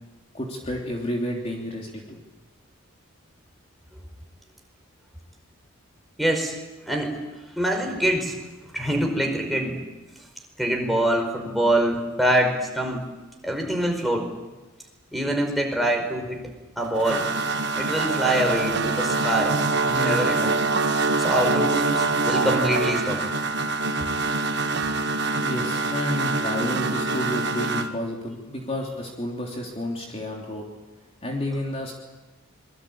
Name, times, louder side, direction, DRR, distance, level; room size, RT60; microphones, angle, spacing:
voice 1, 0.3-2.2 25.4-30.7 31.2-31.9, left 1 dB, 30° left, 0 dB, 3.3 m, -30 dB
voice 2, 6.2-6.5 6.9-7.2 7.6-8.3 8.7-9.7 10.6-13.0 13.4-14.3 15.1-16.4 16.8-17.2 17.7-19.6 19.9-20.6 21.2-23.2, right 1 dB, ahead, 1 dB, 5.1 m, -24 dB
sound 1, 16.8-27.9, right 3 dB, 55° right, 1.5 m, -24 dB
25.5 x 23.0 x 8.8 m, 1.1 s
head